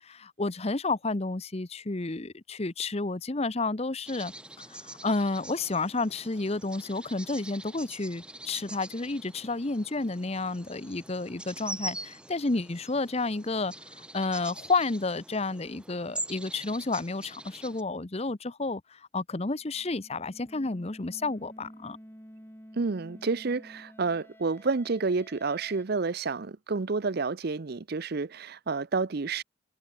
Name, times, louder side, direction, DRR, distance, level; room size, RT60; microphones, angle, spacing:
voice 1, 0.0-4.3 4.7-13.7 14.1-22.0, left 3 dB, 30° left, 0.8 m, -31 dB
sound 1, 4.0-17.8, right 1 dB, 5° right, 3.9 m, -44 dB
sound 2, 19.6-25.8, equal, 10° left, 7.3 m, -51 dB
voice 2, 22.7-29.4, right 4 dB, 50° right, 0.6 m, -29 dB
head